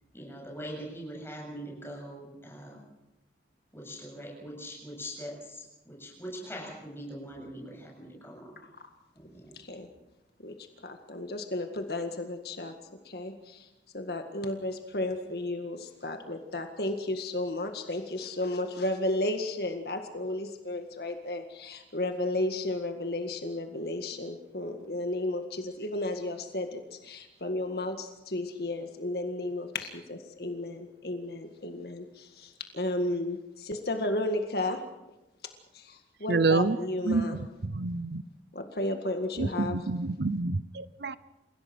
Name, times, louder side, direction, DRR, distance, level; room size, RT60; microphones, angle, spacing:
voice 1, 0.1-2.8 3.7-8.5 9.2-9.5, equal, 15° left, 0 dB, 7.6 m, -42 dB
voice 2, 9.5-9.9 10.4-10.5 10.8-12.7 13.1-13.7 13.9-34.8 35.7-37.4 38.5-39.8, left 1 dB, 60° left, 5 dB, 1.9 m, -33 dB
voice 3, 36.3-36.8 37.1-38.2 39.4-41.2, right 3 dB, 70° right, 16 dB, 0.7 m, -28 dB
29.0 x 17.0 x 6.2 m, 0.97 s
head